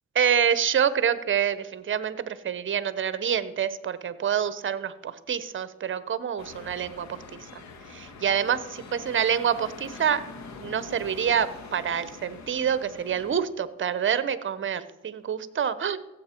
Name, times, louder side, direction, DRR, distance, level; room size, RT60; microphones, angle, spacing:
voice 1, 0.1-7.2 7.9-10.2 10.6-16.0, right 8 dB, 40° right, 15 dB, 0.9 m, -27 dB
sound 1, 6.4-13.4, left 4 dB, 65° left, 1.6 m, -44 dB
16.0 x 7.7 x 4.4 m, 1.1 s
cardioid pair, 90°, 30 cm